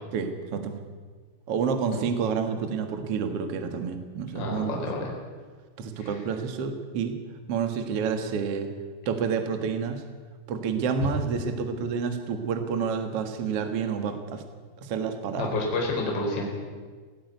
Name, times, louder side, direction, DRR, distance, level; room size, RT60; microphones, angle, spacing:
voice 1, 0.1-0.8 1.5-4.9 5.8-7.1 7.5-8.7 9.0-10.0 10.5-14.4 14.8-15.5, right 6 dB, 60° right, 7 dB, 1.6 m, -29 dB
voice 2, 4.3-5.1 6.0-6.1 15.4-16.5, left 2 dB, 25° left, -1 dB, 4.1 m, -29 dB
17.5 x 15.5 x 9.4 m, 1.5 s
omnidirectional pair, 5.4 m